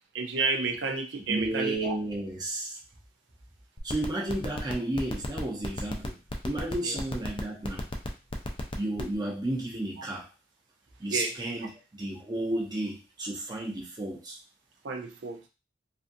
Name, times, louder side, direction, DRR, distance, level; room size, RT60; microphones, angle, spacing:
voice 1, 0.1-1.9 6.8-7.0 11.1-11.3 14.8-15.4, right 4 dB, 80° right, 3 dB, 0.5 m, -31 dB
voice 2, 1.3-2.8 3.8-6.2 6.4-7.8 8.8-10.3 11.0-14.4, right 1 dB, 25° right, -2 dB, 0.6 m, -32 dB
sound 1, 3.8-9.1, left 2 dB, 30° left, 0.4 m, -34 dB
2.5 x 2.4 x 2.6 m, 0.31 s
head